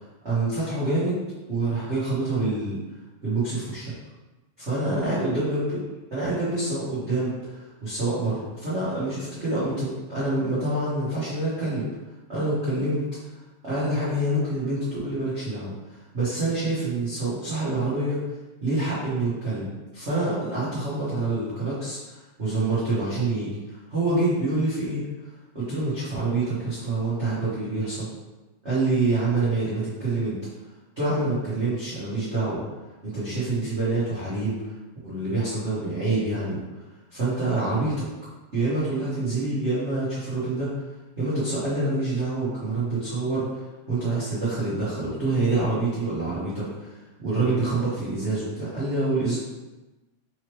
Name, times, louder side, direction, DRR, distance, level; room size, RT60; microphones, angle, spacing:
voice 1, 0.2-1.2 1.5-2.8 3.2-3.9 4.6-5.8 6.1-11.8 12.3-13.0 13.6-18.2 18.6-19.7 19.9-25.3 25.5-28.1 28.6-30.4 31.0-32.6 33.0-34.7 35.0-36.6 37.1-38.1 38.5-40.7 41.2-43.6 43.9-46.9 47.2-49.4, right 2 dB, 85° right, -12 dB, 0.6 m, -26 dB
4.8 x 3.0 x 3.1 m, 1.1 s
omnidirectional pair, 3.4 m